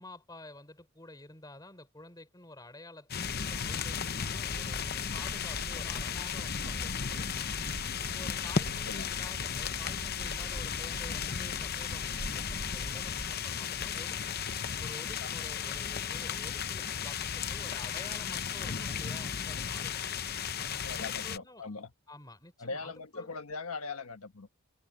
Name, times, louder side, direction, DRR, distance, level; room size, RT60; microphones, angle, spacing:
voice 1, 0.0-7.6 8.1-14.4 14.8-20.0 20.6-21.6 22.1-23.4, left 2 dB, 20° left, 3.6 m, -50 dB
sound 1, 3.1-21.4, left 7 dB, 45° left, 0.7 m, -35 dB
sound 2, 3.2-13.4, right 1 dB, 55° right, 1.0 m, -44 dB
voice 2, 8.6-9.1 15.2-15.4 20.8-21.9 22.6-24.6, left 4 dB, 90° left, 1.4 m, -41 dB
head